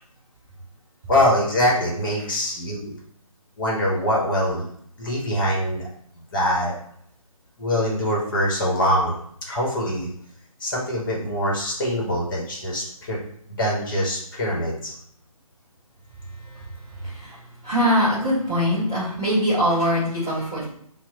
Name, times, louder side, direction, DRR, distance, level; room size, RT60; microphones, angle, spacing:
voice 1, 1.1-2.9 3.6-4.6 5.0-5.9 6.3-6.7 7.6-9.2 9.5-10.1 10.6-13.2 13.6-14.9, left 1 dB, 35° left, -3 dB, 1.0 m, -23 dB
voice 2, 17.6-20.6, equal, 5° right, -13 dB, 0.3 m, -22 dB
3.0 x 2.0 x 3.8 m, 0.67 s
figure-of-eight pair, 150°, 19 cm